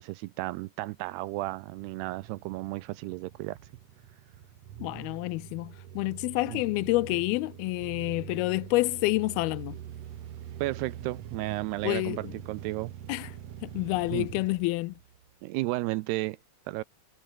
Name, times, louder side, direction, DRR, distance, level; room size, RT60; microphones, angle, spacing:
voice 1, 0.0-3.6 6.5-6.6 10.6-12.9 14.1-14.3 15.4-16.4 16.7-16.8, right 19 dB, 80° right, 2.5 m, -33 dB
sound 1, 1.1-15.4, right 10 dB, 60° right, 1.8 m, -44 dB
voice 2, 4.8-9.8 11.8-12.3 13.1-13.3 13.6-15.0, left 21 dB, 85° left, 2.2 m, -28 dB
omnidirectional pair, 5.0 m